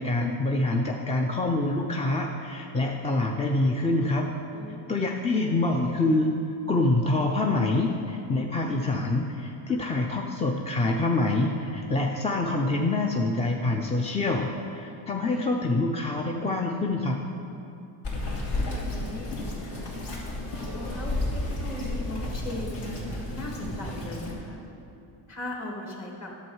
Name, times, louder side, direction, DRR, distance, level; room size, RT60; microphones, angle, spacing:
voice 1, 0.0-4.3 4.9-6.4 6.7-14.5 14.7-17.2, left 2 dB, 15° left, 1 dB, 0.5 m, -26 dB
voice 2, 4.5-5.3 18.3-19.9 20.5-24.6 25.3-26.3, left 1 dB, 35° left, -2 dB, 2.2 m, -39 dB
Bird vocalization bird call bird song, 18.0-24.3, left 2 dB, 55° left, 2.6 m, -32 dB
10.5 x 7.2 x 4.7 m, 2.8 s
cardioid pair, 110°, 47 cm